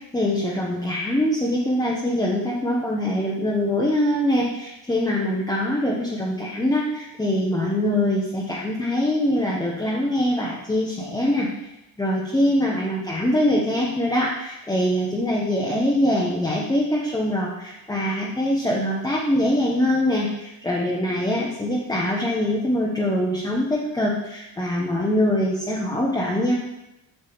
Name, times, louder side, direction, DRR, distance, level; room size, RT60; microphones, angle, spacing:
voice 1, 0.1-11.5 12.0-26.5, left 1 dB, 10° left, -4 dB, 1.0 m, -23 dB
8.5 x 7.4 x 3.6 m, 0.91 s
wide cardioid pair, 155°, 44 cm